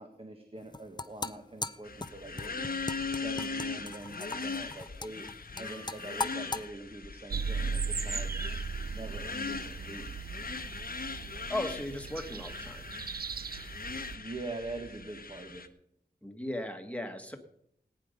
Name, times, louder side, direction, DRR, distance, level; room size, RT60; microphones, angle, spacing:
voice 1, 0.0-2.7 3.1-5.2 5.6-8.6 8.9-10.1 10.3-10.5 14.1-15.7, right 2 dB, 30° right, 4 dB, 1.7 m, -44 dB
sound 1, 0.6-6.6, left 3 dB, 25° left, 0.6 m, -39 dB
sound 2, 1.8-15.7, left 4 dB, 55° left, 1.0 m, -40 dB
sound 3, 7.3-14.2, right 5 dB, 60° right, 0.5 m, -37 dB
voice 2, 11.5-12.9 16.2-17.4, left 1 dB, 5° left, 5 dB, 1.7 m, -37 dB
18.5 x 9.4 x 5.2 m, 0.74 s
wide cardioid pair, 75°, 18 cm